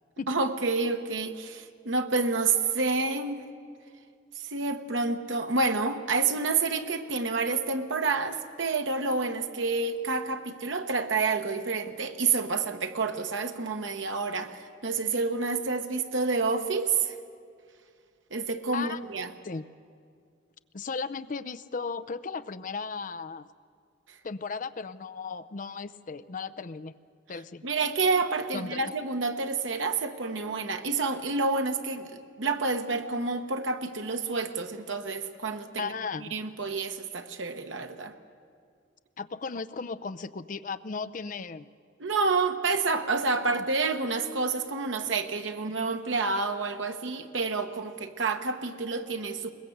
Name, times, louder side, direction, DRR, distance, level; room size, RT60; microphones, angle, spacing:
voice 1, 0.3-3.4 4.4-17.1 18.3-19.3 27.6-35.9 36.3-38.1 42.0-49.5, right 4 dB, 90° right, 6 dB, 1.2 m, -29 dB
voice 2, 20.7-23.5 24.2-27.0 27.3-27.7 28.5-28.8 35.8-36.3 39.2-41.7 43.4-43.6, left 4 dB, 45° left, 14 dB, 0.6 m, -36 dB
22.0 x 20.0 x 7.9 m, 2.2 s
head